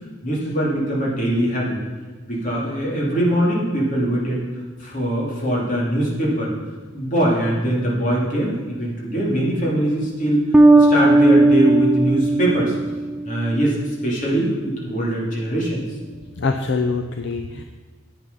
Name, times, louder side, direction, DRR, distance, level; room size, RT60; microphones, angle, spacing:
voice 1, 0.2-1.8 2.2-4.4 4.8-6.5 6.9-12.7 13.2-15.8, right 1 dB, 40° left, -4 dB, 2.9 m, -22 dB
Bass guitar, 10.5-13.6, right 2 dB, 5° right, 0.4 m, -15 dB
voice 2, 16.4-17.6, left 4 dB, 60° left, 5 dB, 0.6 m, -24 dB
9.9 x 8.7 x 5.5 m, 1.3 s
head